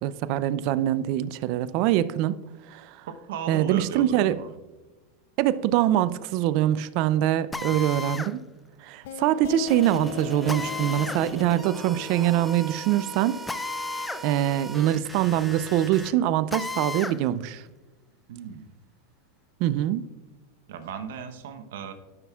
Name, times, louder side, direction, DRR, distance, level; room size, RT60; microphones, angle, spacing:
voice 1, 0.0-2.4 2.7-3.0 3.5-4.4 5.4-8.4 8.8-13.4 14.2-17.6 19.6-20.0, right 12 dB, 55° right, 0.4 m, -24 dB
voice 2, 3.1-4.5 7.7-8.2 18.3-18.7 20.7-21.9, right 7 dB, 75° right, 0.9 m, -37 dB
Drill, 7.5-8.3 10.5-11.2 13.5-14.2 14.6-14.7 16.5-17.2, left 3 dB, 10° left, 0.4 m, -33 dB
sound 1, 9.0-14.4, left 10 dB, 70° left, 0.4 m, -40 dB
sound 2, 9.7-16.1, right 2 dB, 10° right, 0.9 m, -40 dB
12.0 x 5.9 x 2.4 m
hypercardioid pair, 120°, 0 cm